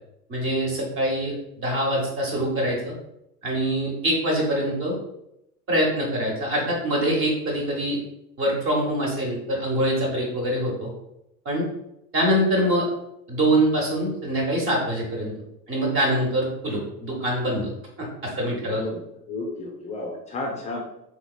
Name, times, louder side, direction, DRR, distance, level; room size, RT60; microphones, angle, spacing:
voice 1, 0.3-2.9 3.4-5.0 5.7-8.0 8.4-10.9 11.4-11.7 12.1-12.8 13.3-15.3 15.7-17.7 18.0-18.8, right 1 dB, 25° right, -1 dB, 1.1 m, -24 dB
voice 2, 18.4-19.0 19.3-20.8, left 2 dB, 15° left, 0 dB, 0.4 m, -33 dB
3.9 x 3.0 x 2.3 m, 0.83 s
figure-of-eight pair, 80°, 47 cm